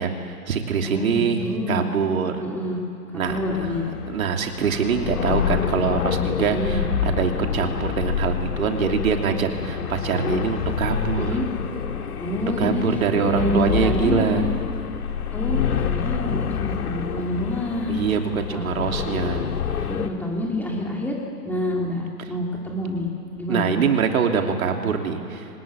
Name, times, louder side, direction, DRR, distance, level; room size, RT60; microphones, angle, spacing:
voice 1, 0.0-1.4 1.7-2.4 3.1-3.4 4.1-11.3 12.6-14.5 17.9-19.4 19.8-19.9 23.5-25.5, right 6 dB, 55° right, 4 dB, 3.1 m, -24 dB
voice 2, 0.8-1.9 2.4-2.8 3.1-3.9 6.4-6.9 11.2-11.5 12.2-12.8 13.2-14.5 15.3-18.0 18.5-18.7 19.9-21.2 21.4-23.1 23.4-23.9, left 1 dB, 5° left, -2 dB, 2.2 m, -27 dB
sound 1, 3.3-20.1, left 8 dB, 65° left, 2.5 m, -27 dB
25.0 x 19.5 x 9.1 m, 2.8 s
hypercardioid pair, 145°, 48 cm